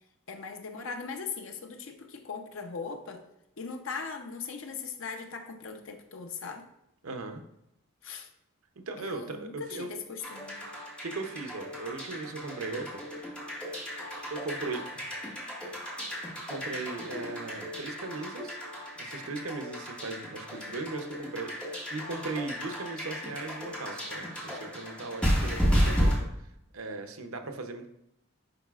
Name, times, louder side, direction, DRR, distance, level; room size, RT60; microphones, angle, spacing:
voice 1, 0.3-3.2 3.6-6.7 8.0-8.3 9.0-10.7, left 5 dB, 70° left, 5 dB, 0.7 m, -39 dB
voice 2, 7.0-7.4 8.9-9.9 10.7-13.0 14.3-15.1 16.5-18.6 19.0-26.3 26.7-27.9, right 3 dB, 85° right, 6 dB, 0.7 m, -38 dB
sound 1, 10.2-26.2, equal, 5° left, 1.7 m, -33 dB
10.5 x 4.0 x 2.4 m, 0.82 s
head